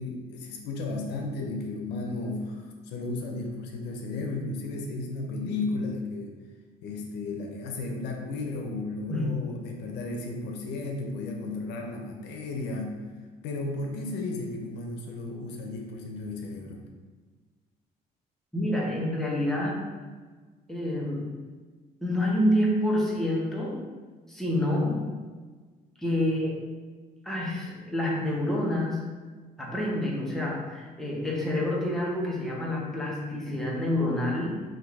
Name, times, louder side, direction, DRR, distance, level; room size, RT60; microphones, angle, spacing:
voice 1, 0.0-6.4 6.8-13.0 13.4-16.8, left 3 dB, 85° left, 1 dB, 0.7 m, -34 dB
voice 2, 18.5-19.8 20.7-21.4 22.0-23.8 24.3-25.1 26.0-26.7 27.2-29.1 29.6-34.6, left 1 dB, ahead, -4 dB, 1.0 m, -28 dB
3.7 x 2.6 x 4.7 m, 1.4 s
cardioid pair, 110°, 17 cm